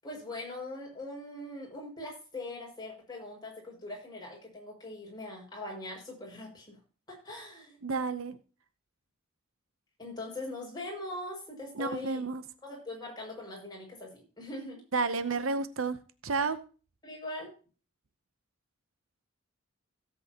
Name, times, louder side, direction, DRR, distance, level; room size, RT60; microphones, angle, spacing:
voice 1, 0.0-6.8 7.1-7.8 10.0-12.2 12.6-14.8 17.0-17.5, left 2 dB, 20° left, -2 dB, 6.2 m, -41 dB
voice 2, 7.8-8.4 11.7-12.4 14.9-16.6, right 4 dB, 70° right, 12 dB, 0.8 m, -31 dB
16.5 x 8.3 x 2.9 m, 0.36 s
head